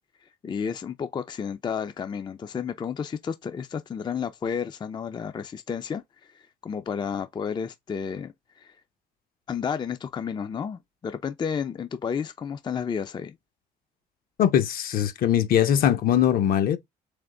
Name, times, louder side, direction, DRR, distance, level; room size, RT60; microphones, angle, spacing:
voice 1, 0.4-8.8 9.5-13.4, left 6 dB, 25° left, 0.4 m, -32 dB
voice 2, 14.4-16.8, left 10 dB, 60° left, 0.8 m, -21 dB
3.4 x 3.4 x 3.7 m
cardioid pair, 110°, 17 cm